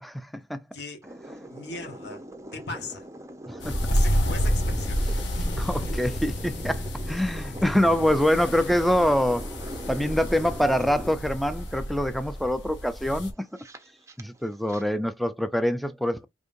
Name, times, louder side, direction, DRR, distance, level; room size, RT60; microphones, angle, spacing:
voice 1, 0.0-0.6 3.5-3.8 5.6-9.5 9.9-13.5 14.2-16.2, equal, ahead, 0.4 m, -25 dB
voice 2, 0.7-1.1 1.5-2.2 2.5-3.1 3.7-5.0 5.8-6.0, left 3 dB, 65° left, 1.4 m, -39 dB
sound 1, 1.0-14.8, right 1 dB, 15° right, 0.8 m, -42 dB
sound 2, 3.6-13.3, equal, 80° left, 1.3 m, -29 dB
5.3 x 3.6 x 2.6 m
head